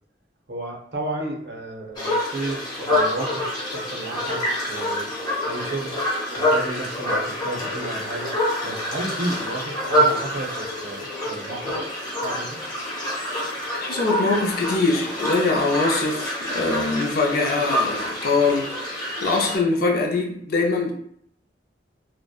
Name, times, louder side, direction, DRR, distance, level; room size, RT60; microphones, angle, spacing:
voice 1, 0.5-3.5 3.7-5.1 5.5-5.9 6.4-8.3 8.6-11.7 12.2-12.6, right 2 dB, 65° right, 0 dB, 0.6 m, -32 dB
sound 1, 1.9-19.6, equal, 25° left, 0.8 m, -26 dB
voice 2, 13.4-20.9, left 3 dB, 55° left, 1 dB, 0.5 m, -23 dB
2.6 x 2.0 x 2.3 m, 0.67 s
head